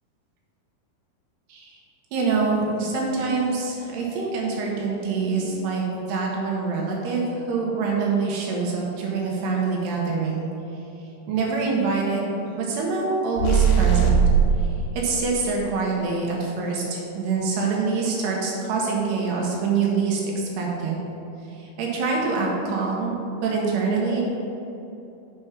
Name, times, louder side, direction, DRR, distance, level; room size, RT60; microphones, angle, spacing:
voice 1, 2.1-10.5 11.3-12.3 12.6-14.2 15.0-20.2 20.6-21.0 21.8-23.2 23.4-24.2, right 4 dB, 85° right, -2 dB, 3.4 m, -25 dB
sound 1, 13.4-14.6, right 6 dB, 75° left, 1.9 m, -18 dB
7.4 x 4.8 x 5.8 m, 3.0 s
omnidirectional pair, 4.6 m